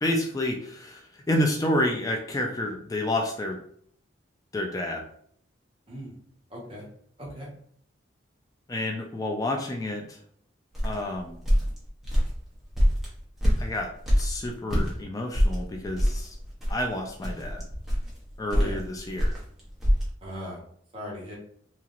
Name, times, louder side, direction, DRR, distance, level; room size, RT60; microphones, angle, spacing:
voice 1, 0.0-3.6 4.5-5.0 8.7-10.2 10.8-11.4 13.6-13.9 14.2-16.4 16.7-17.6 18.4-19.3, left 1 dB, 20° left, 2 dB, 0.3 m, -29 dB
voice 2, 6.5-6.9 7.2-7.5 18.5-18.8 20.2-20.6 20.9-21.3, equal, 30° right, -5 dB, 1.0 m, -38 dB
sound 1, 10.7-14.9 15.3-20.1, equal, ahead, 0.7 m, -25 dB
2.9 x 2.8 x 2.4 m, 0.62 s
head